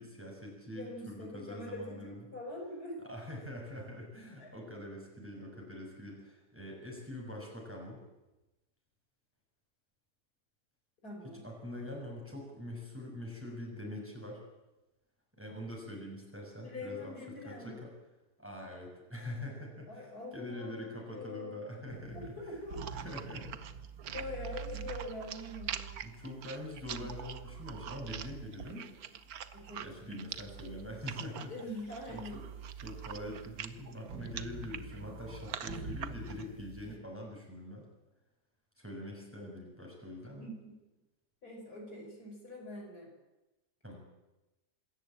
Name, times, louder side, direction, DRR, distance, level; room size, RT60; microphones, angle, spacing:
voice 1, 0.0-2.3 3.0-8.0 11.2-14.4 15.4-17.1 17.4-17.9 18.4-22.6 22.9-23.6 26.0-28.9 29.8-31.5 32.1-32.4 32.8-37.9 38.8-40.5 43.8-44.0, left 1 dB, 5° right, -1 dB, 6.3 m, -44 dB
voice 2, 0.7-3.0 4.4-4.5 11.0-11.5 16.6-17.8 19.9-22.8 24.0-26.0 29.5-30.2 31.5-32.5 40.4-40.7 41.4-43.1, left 2 dB, 70° left, 0 dB, 5.7 m, -44 dB
sound 1, 21.9-37.0, right 5 dB, 90° right, 2.5 m, -47 dB
sound 2, 22.7-36.5, right 9 dB, 70° right, 1.4 m, -45 dB
25.5 x 14.0 x 8.8 m, 1.0 s
omnidirectional pair, 1.7 m